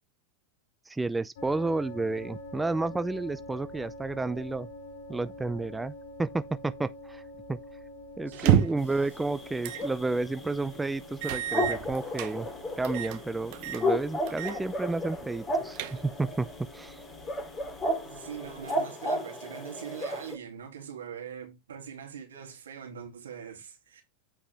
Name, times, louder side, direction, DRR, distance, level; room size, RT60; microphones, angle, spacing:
voice 1, 0.9-4.7 5.1-5.9 6.2-7.2 7.5-7.6 8.2-12.5 12.8-16.5 16.7-17.0, right 3 dB, 10° right, 0.5 m, -31 dB
sound 1, 1.4-18.7, left 1 dB, 70° left, 1.7 m, -46 dB
voice 2, 8.2-8.7 18.0-24.0, right 8 dB, 90° right, 2.6 m, -42 dB
sound 2, 8.3-8.9 9.6-9.9 10.3-10.4 11.2-12.3 12.8-13.2 13.5-13.8 14.3-14.6 14.9-15.0 15.5-16.3, right 11 dB, 55° right, 1.0 m, -28 dB
sound 3, 8.8-20.4, equal, 20° left, 3.0 m, -34 dB
8.7 x 4.9 x 3.4 m
hypercardioid pair, 110°, 0 cm